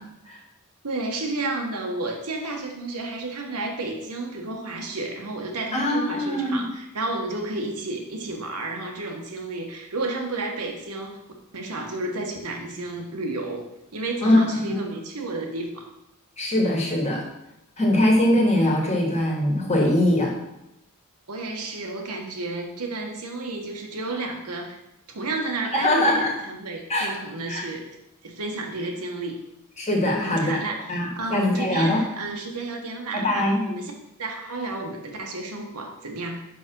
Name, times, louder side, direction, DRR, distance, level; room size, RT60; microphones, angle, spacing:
voice 1, 0.8-11.2 11.5-15.9 21.3-24.8 25.1-27.9 28.2-29.4 30.1-30.8 31.2-33.9 34.2-36.5, right 2 dB, 90° right, 2 dB, 1.3 m, -31 dB
voice 2, 5.7-6.6 14.2-14.8 16.4-17.2 17.8-20.3 25.7-26.3 26.9-27.1 27.5-27.6 29.8-30.6 30.9-32.0 33.1-33.6, left 1 dB, 30° left, -1 dB, 1.6 m, -22 dB
5.7 x 5.1 x 5.3 m, 0.86 s
head